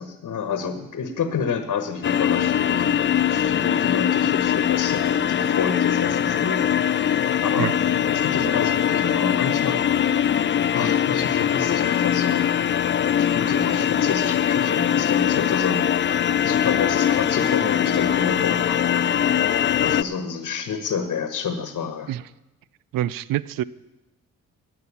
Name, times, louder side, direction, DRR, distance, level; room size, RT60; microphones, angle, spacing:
voice 1, 0.0-2.9 3.3-7.7 8.1-10.2 10.7-12.5 13.2-18.9 19.8-22.1, left 6 dB, 55° left, 8 dB, 1.3 m, -29 dB
sound 1, 2.0-20.0, left 9 dB, 35° left, 0.4 m, -21 dB
voice 2, 22.9-23.6, right 13 dB, 70° right, 19 dB, 0.5 m, -25 dB
11.0 x 7.8 x 8.3 m, 0.99 s
hypercardioid pair, 50°, 35 cm